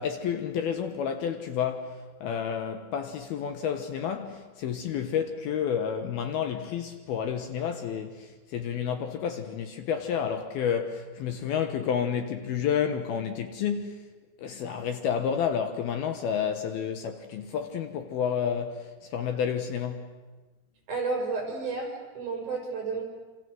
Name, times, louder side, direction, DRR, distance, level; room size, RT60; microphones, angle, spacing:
voice 1, 0.0-14.1 14.4-20.1, left 8 dB, 70° left, 2.9 m, -30 dB
voice 2, 20.9-23.0, right 4 dB, 45° right, 6.8 m, -31 dB
27.0 x 26.5 x 7.9 m
omnidirectional pair, 5.1 m